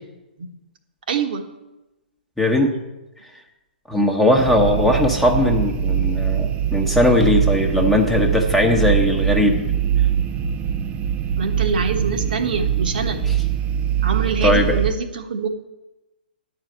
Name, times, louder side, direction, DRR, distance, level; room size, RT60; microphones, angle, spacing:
voice 1, 1.1-1.5 11.4-13.2 14.0-15.5, right 5 dB, 60° right, 6 dB, 1.3 m, -25 dB
voice 2, 2.4-2.7 3.2-3.3 3.9-9.6 13.2-13.4 14.4-14.8, left 1 dB, 5° left, 0 dB, 1.1 m, -18 dB
sound 1, 4.4-14.9, right 10 dB, 20° right, 0.6 m, -22 dB
10.0 x 4.9 x 8.0 m, 1.0 s
figure-of-eight pair, 125°, 5 cm